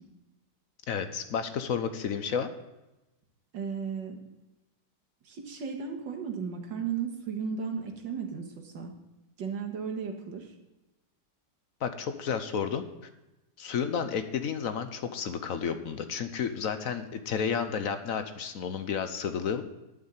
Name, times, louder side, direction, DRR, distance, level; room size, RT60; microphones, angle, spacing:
voice 1, 0.9-2.5 11.8-12.8 13.6-19.6, left 7 dB, 60° left, 9 dB, 1.0 m, -31 dB
voice 2, 3.5-4.2 5.3-8.9 9.4-10.5, right 6 dB, 85° right, 2 dB, 2.3 m, -35 dB
11.5 x 5.6 x 8.9 m, 0.99 s
omnidirectional pair, 1.9 m